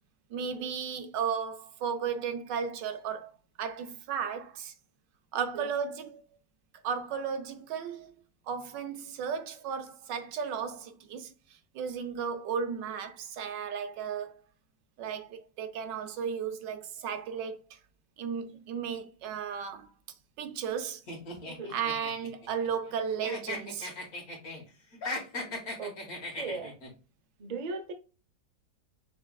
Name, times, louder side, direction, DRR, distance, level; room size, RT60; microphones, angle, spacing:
voice 1, 0.3-3.3 3.6-4.7 5.3-6.2 6.8-8.1 8.5-11.3 11.7-14.4 15.0-17.8 18.2-19.9 20.4-21.0 21.7-23.9, right 7 dB, 80° right, 1.4 m, -34 dB
voice 2, 5.3-5.7 21.4-21.8 25.8-26.0 26.3-26.8 27.4-27.9, right 4 dB, 60° right, 0.4 m, -38 dB
sound 1, 21.1-22.9 23.2-24.6 24.9-26.9, left 2 dB, 55° left, 2.0 m, -38 dB
5.9 x 3.4 x 2.3 m
omnidirectional pair, 1.9 m